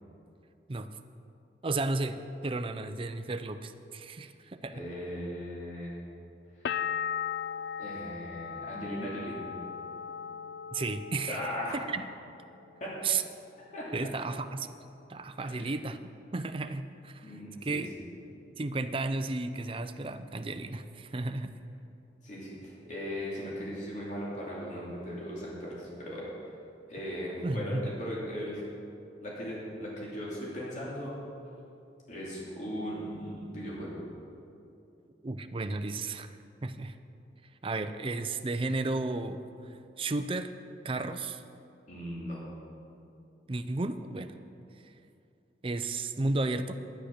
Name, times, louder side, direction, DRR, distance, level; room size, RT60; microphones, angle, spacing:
voice 1, 1.6-4.8 10.7-11.5 11.9-12.1 13.0-13.2 13.9-14.7 15.1-16.0 16.3-17.3 17.6-17.9 18.6-21.5 27.4-27.8 35.2-36.4 36.6-37.0 37.6-40.5 40.8-41.4 43.5-44.3 44.8-44.9 45.6-46.8, right 3 dB, 30° right, 10 dB, 0.5 m, -33 dB
voice 2, 4.7-6.0 7.8-9.4 11.3-11.7 12.8-12.9 13.7-14.1 15.4-15.7 17.2-17.8 22.2-26.3 26.9-28.6 29.2-31.1 32.1-34.0 41.9-42.4, equal, 45° left, -6 dB, 2.8 m, -38 dB
sound 1, 6.7-12.3 12.6-13.3, left 8 dB, 65° left, 0.3 m, -38 dB
10.5 x 10.0 x 6.6 m, 2.6 s
head